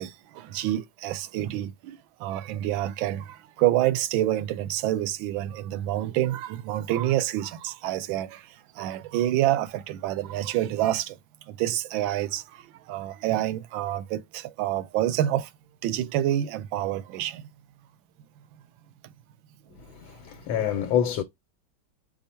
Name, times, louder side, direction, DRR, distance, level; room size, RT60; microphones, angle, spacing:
voice 1, 0.0-15.5 15.8-17.5 19.0-19.1, right 13 dB, 80° right, 1.4 m, -28 dB
voice 2, 19.8-21.2, left 9 dB, 90° left, 1.6 m, -27 dB
5.6 x 2.1 x 4.2 m
omnidirectional pair, 2.1 m